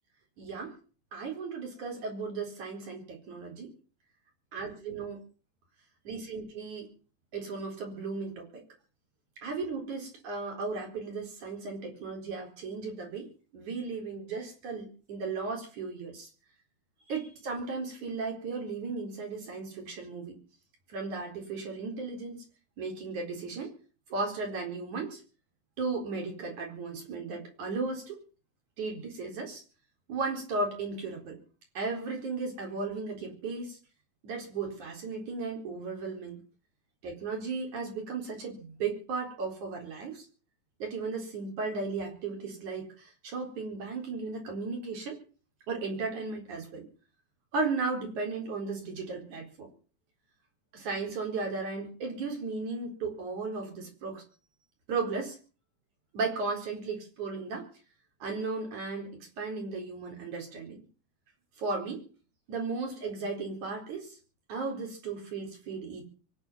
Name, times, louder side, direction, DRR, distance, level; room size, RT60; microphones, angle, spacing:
voice 1, 0.4-0.7 1.1-3.7 4.5-5.2 6.1-6.9 7.3-8.6 9.4-13.3 13.5-16.3 17.1-20.4 20.9-22.4 22.8-23.8 24.1-25.2 25.8-28.2 28.8-29.6 30.1-31.4 31.8-33.8 34.2-36.4 37.0-40.3 40.8-45.2 45.7-46.8 47.5-49.7 50.7-54.2 54.9-55.4 56.1-57.7 58.2-60.8 61.6-62.1 62.5-64.1 64.5-66.1, right 4 dB, 85° right, 2 dB, 5.7 m, -35 dB
23.5 x 10.0 x 5.7 m, 0.38 s
omnidirectional pair, 3.3 m